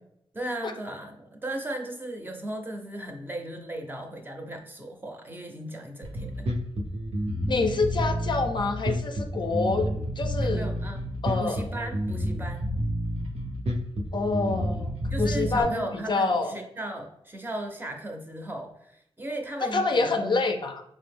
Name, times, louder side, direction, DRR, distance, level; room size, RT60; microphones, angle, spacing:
voice 1, 0.3-6.5 10.4-11.1 11.4-12.7 15.1-20.4, right 1 dB, 20° right, 3 dB, 0.6 m, -36 dB
Bass guitar, 6.0-15.6, equal, 80° right, 0.8 m, -29 dB
voice 2, 7.5-10.7 11.2-11.6 14.1-14.9 15.2-16.5 19.6-20.8, left 3 dB, 50° left, 5 dB, 0.4 m, -27 dB
5.0 x 2.0 x 3.4 m, 0.76 s
wide cardioid pair, 95°, 10 cm